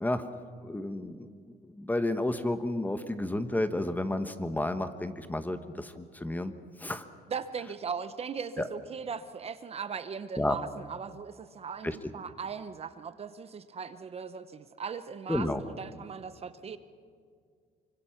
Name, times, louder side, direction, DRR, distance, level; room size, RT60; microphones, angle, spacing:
voice 1, 0.6-1.3 1.8-6.5 6.8-7.0 8.6-8.7 10.4-10.6 11.8-12.0 15.3-15.6, left 1 dB, 10° left, 10 dB, 1.2 m, -31 dB
voice 2, 7.3-16.8, right 6 dB, 35° right, 12 dB, 0.9 m, -39 dB
25.5 x 24.5 x 5.8 m, 2.1 s
cardioid pair, 110°, 17 cm